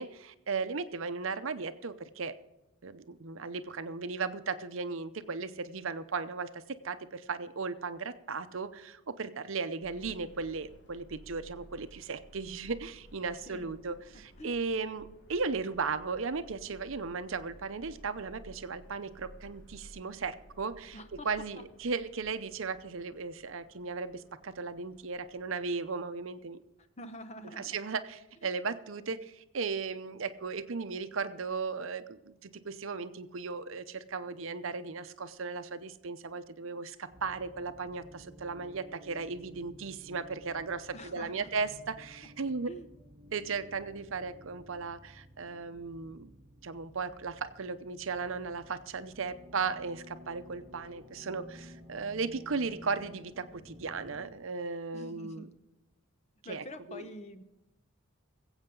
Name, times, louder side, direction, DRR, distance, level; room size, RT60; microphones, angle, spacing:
voice 1, 0.0-2.3 2.8-26.6 27.6-42.7 43.3-46.3 46.6-55.5 56.4-57.1, right 4 dB, 70° right, 11 dB, 0.7 m, -36 dB
Subway metro underground, 9.8-26.0, equal, 55° left, 1.5 m, -56 dB
voice 2, 20.9-21.3 27.0-27.8 40.9-41.5 42.7-42.9 54.9-55.5 56.4-57.4, equal, 30° left, 10 dB, 0.8 m, -45 dB
sound 1, 37.1-54.4, equal, 25° right, 1.3 m, -54 dB
21.5 x 8.1 x 3.8 m, 1.0 s
head